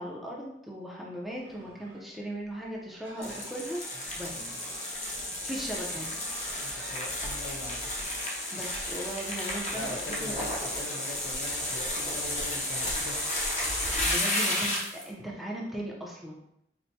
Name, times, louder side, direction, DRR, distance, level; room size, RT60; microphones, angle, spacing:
voice 1, 0.0-3.8 4.2-4.6 5.5-6.2 8.5-10.5 14.1-16.4, right 1 dB, ahead, -4 dB, 0.5 m, -38 dB
Livestock farm animals working animals, 1.3-7.0, right 2 dB, 80° right, 0.7 m, -51 dB
sound 1, 3.2-15.1, left 1 dB, 40° left, 0.6 m, -32 dB
voice 2, 6.5-8.1 9.7-13.2, left 1 dB, 75° left, -1 dB, 0.7 m, -42 dB
4.4 x 2.1 x 2.7 m, 0.79 s
head